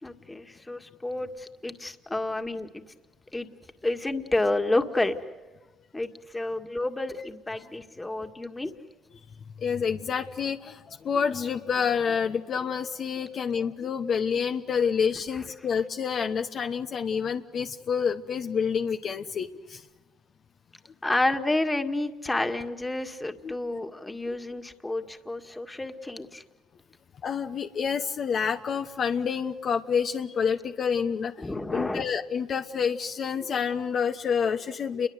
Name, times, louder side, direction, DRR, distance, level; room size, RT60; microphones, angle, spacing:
voice 1, 0.0-2.8 3.3-3.5 3.8-5.1 5.9-8.7 21.0-26.4 31.4-32.1, left 2 dB, 15° left, 6 dB, 1.9 m, -30 dB
voice 2, 9.6-19.8 23.4-23.8 24.3-24.4 27.2-35.1, left 6 dB, 50° left, 6 dB, 1.0 m, -28 dB
29.5 x 22.5 x 8.1 m, 1.2 s
supercardioid pair, 80°, 0 cm